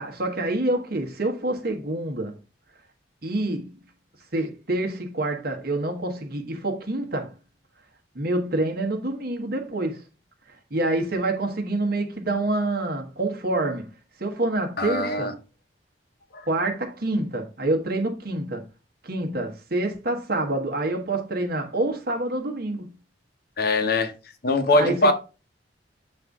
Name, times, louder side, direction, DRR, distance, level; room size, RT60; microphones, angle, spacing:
voice 1, 0.0-2.3 3.2-3.7 4.3-7.3 8.1-10.0 10.7-13.9 14.2-15.3 16.5-18.6 19.0-22.9 24.7-25.1, right 2 dB, 55° right, 1.2 m, -27 dB
voice 2, 14.8-15.3 16.3-16.5 23.6-24.1 24.4-25.1, left 2 dB, 55° left, 0.8 m, -22 dB
7.7 x 2.6 x 4.7 m
head